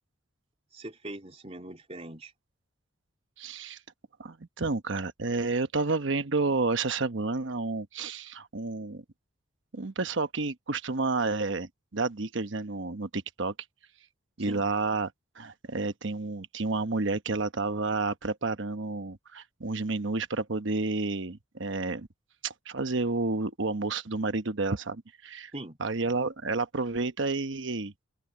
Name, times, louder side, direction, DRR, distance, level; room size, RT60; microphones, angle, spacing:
voice 1, 0.7-2.3 14.4-14.6 25.5-25.8, right 1 dB, 30° right, 3.4 m, -41 dB
voice 2, 3.4-3.8 4.2-9.0 9.7-13.5 14.4-22.1 22.4-25.5 25.8-27.9, right 3 dB, 65° right, 1.0 m, -30 dB
open air
head